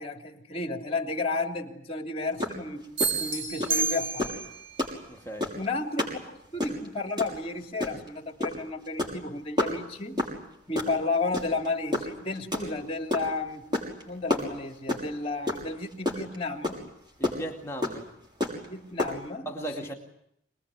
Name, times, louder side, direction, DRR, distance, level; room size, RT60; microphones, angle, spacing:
voice 1, 0.0-2.8 3.2-4.3 5.5-10.2 10.7-13.6 14.1-16.8 18.7-19.5 19.8-19.9, left 3 dB, 30° left, 5 dB, 3.1 m, -32 dB
sound 1, 2.4-2.6 2.8-3.1 3.6-3.8 4.2-4.4 4.8-5.0 5.4-5.7 6.0-6.2 6.4-6.9 7.2-7.4 7.8-8.1 8.4-8.6 8.9-9.2 9.6-9.7 10.2-10.4 10.8-10.9 11.3-11.7 11.9-13.3 13.7-14.0 14.3-15.1 15.5-15.6 15.9-16.4 16.6-16.7 17.2-17.4 17.8-17.9 18.4-18.7 19.0-19.1, left 2 dB, 25° right, 6.2 m, -27 dB
sound 2, 3.0-4.6, right 3 dB, 75° right, 3.8 m, -29 dB
voice 2, 5.1-5.5 17.2-18.1 19.5-19.9, right 1 dB, 15° left, 1 dB, 2.4 m, -36 dB
26.5 x 20.5 x 9.9 m, 0.74 s
head